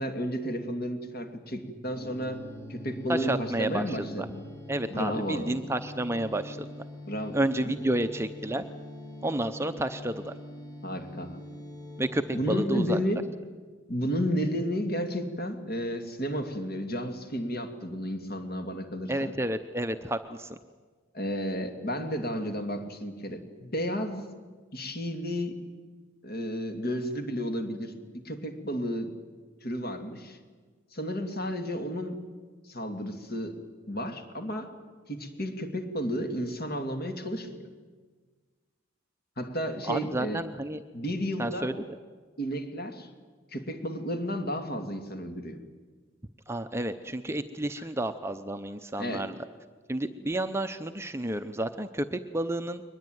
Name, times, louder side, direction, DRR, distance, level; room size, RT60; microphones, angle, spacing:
voice 1, 0.0-2.4 2.7-4.4 4.9-5.5 7.1-7.4 7.6-7.7 10.8-11.4 12.3-13.2 13.9-19.3 21.1-24.3 24.7-25.6 26.2-29.1 29.6-30.4 30.9-32.2 32.6-33.6 33.9-34.7 35.1-37.7 39.4-40.4 40.9-41.7 42.4-43.1 43.5-45.6 47.8-47.9 49.0-49.3, equal, 50° left, 6 dB, 2.5 m, -32 dB
sound 1, 1.8-12.5, left 1 dB, 15° left, 5.7 m, -43 dB
voice 2, 3.1-4.3 4.7-6.7 7.3-8.6 9.2-10.3 12.0-13.0 19.1-20.6 39.9-40.8 41.4-41.7 46.5-49.4 49.9-52.8, right 1 dB, 15° right, 8 dB, 0.7 m, -30 dB
22.5 x 20.5 x 9.4 m, 1.5 s
head